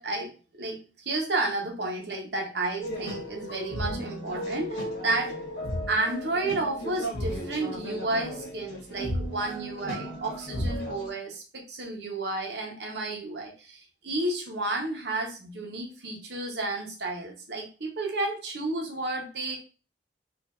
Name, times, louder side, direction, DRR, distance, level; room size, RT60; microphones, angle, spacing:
voice 1, 0.0-5.4 5.9-19.6, right 2 dB, 70° right, 1 dB, 1.0 m, -32 dB
sound 1, 2.8-11.1, equal, 65° left, 1.4 m, -34 dB
4.1 x 2.6 x 2.5 m, 0.34 s
head